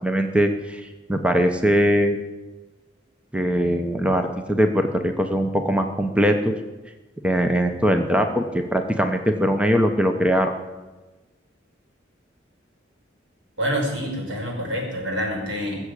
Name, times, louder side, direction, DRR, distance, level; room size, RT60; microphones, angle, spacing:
voice 1, 0.0-2.2 3.3-6.5 7.2-10.5, equal, 5° right, 5 dB, 0.9 m, -21 dB
voice 2, 13.6-15.8, equal, 85° right, -1 dB, 5.5 m, -27 dB
19.5 x 7.3 x 8.4 m, 1.2 s
head